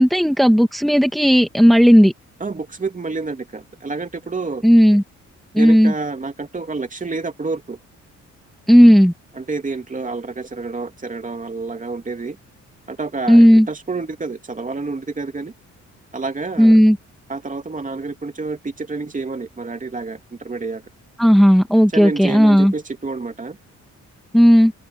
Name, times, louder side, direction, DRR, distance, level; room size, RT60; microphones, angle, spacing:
voice 1, 0.0-2.1 4.6-5.0 5.5-5.9 8.7-9.1 13.3-13.7 16.6-17.0 21.2-22.7 24.3-24.7, equal, ahead, 2.5 m, -12 dB
voice 2, 2.4-4.6 5.5-7.8 9.4-12.4 12.9-15.5 16.1-16.8 17.3-20.8 21.9-23.6, right 3 dB, 25° right, 3.0 m, -28 dB
open air
cardioid pair, 90°, 30 cm